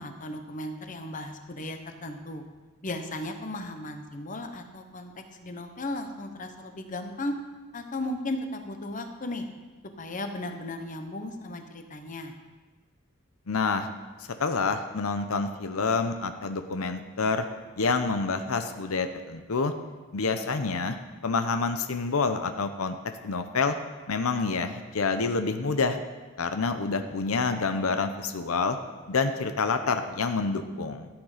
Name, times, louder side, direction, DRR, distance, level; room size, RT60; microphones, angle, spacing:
voice 1, 0.0-2.4 2.8-5.1 5.4-7.3 7.7-9.5 10.0-12.4, left 1 dB, 35° left, 6 dB, 1.0 m, -35 dB
voice 2, 13.5-13.9 14.4-17.5 17.8-19.7 20.1-21.0 21.2-23.0 23.2-23.8 24.1-26.0 26.4-28.8 29.1-31.1, left 4 dB, 90° left, 8 dB, 0.8 m, -27 dB
14.0 x 8.9 x 5.0 m, 1.3 s
head